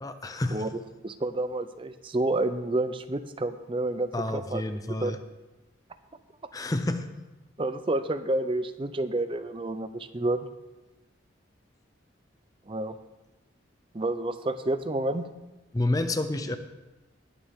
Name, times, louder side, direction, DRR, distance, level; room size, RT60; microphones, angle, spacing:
voice 1, 0.0-0.7 4.1-5.2 6.5-7.1 15.7-16.6, left 2 dB, 20° left, 9 dB, 0.5 m, -29 dB
voice 2, 0.5-4.6 5.0-5.1 7.6-10.5 12.7-13.0 13.9-15.3, right 2 dB, 25° right, 11 dB, 0.5 m, -29 dB
20.0 x 7.2 x 3.6 m, 1.1 s
head